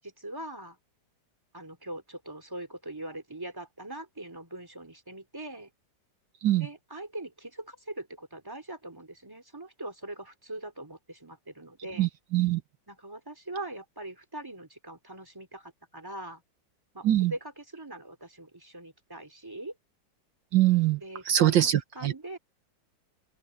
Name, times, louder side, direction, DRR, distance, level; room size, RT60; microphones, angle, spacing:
voice 1, 0.0-0.8 1.5-5.7 6.6-12.1 12.9-16.4 16.9-19.7 21.0-22.4, right 1 dB, 10° right, 3.4 m, -41 dB
voice 2, 12.0-12.6 17.0-17.3 20.5-21.0 21.3-22.1, right 13 dB, 80° right, 1.8 m, -23 dB
open air
omnidirectional pair, 2.0 m